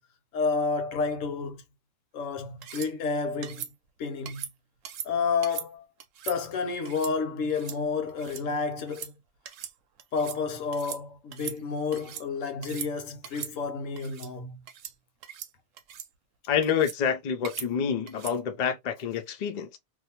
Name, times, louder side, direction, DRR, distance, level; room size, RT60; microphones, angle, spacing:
voice 1, 0.3-1.6 2.1-3.7 4.0-4.5 5.0-5.9 6.2-9.1 10.1-14.6, left 4 dB, 85° left, 1.1 m, -30 dB
sound 1, 2.6-2.9 3.4-3.7 4.3-4.5 4.8-5.1 5.4-5.7 6.0-6.4 6.8-7.1 7.5-7.8 8.1-8.4 8.8-9.1 9.4-9.7 10.0-10.4 10.7-11.0 11.3-12.2 12.6-12.9 13.2-13.5 14.0-14.3 14.7-14.9 15.2-15.5 15.8-16.1 16.6-17.0 17.4-17.7 18.1-18.4, right 9 dB, 80° right, 0.9 m, -40 dB
voice 2, 16.5-19.8, left 7 dB, 65° left, 0.4 m, -28 dB
2.6 x 2.0 x 2.8 m
omnidirectional pair, 1.3 m